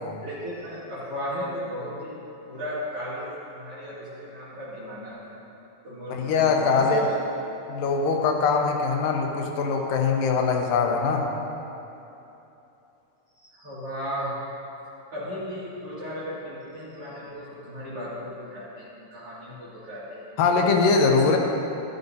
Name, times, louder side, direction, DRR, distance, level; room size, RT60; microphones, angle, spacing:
voice 1, 0.2-2.2 2.4-5.4 5.8-7.0 13.4-14.4 15.1-20.3 20.7-21.0, equal, 45° right, -11 dB, 3.2 m, -35 dB
voice 2, 6.1-7.1 7.7-11.3 20.4-21.4, left 4 dB, 75° left, 2 dB, 2.5 m, -22 dB
13.0 x 13.0 x 2.8 m, 3.0 s
omnidirectional pair, 4.0 m